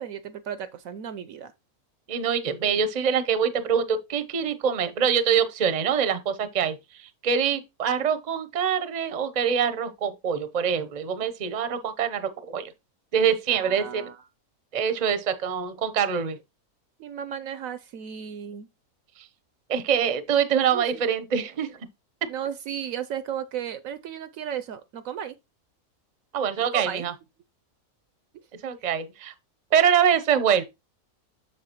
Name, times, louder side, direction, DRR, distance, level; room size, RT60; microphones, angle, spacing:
voice 1, 0.0-1.5 13.5-14.2 17.0-18.7 20.7-21.0 22.3-25.3 26.6-27.1, right 8 dB, 70° right, 0.9 m, -34 dB
voice 2, 2.1-6.8 7.2-12.7 13.1-14.0 14.7-16.4 19.7-21.7 26.3-27.1 28.6-29.3 29.7-30.6, right 7 dB, 40° right, 0.6 m, -24 dB
7.5 x 6.8 x 2.9 m
omnidirectional pair, 1.6 m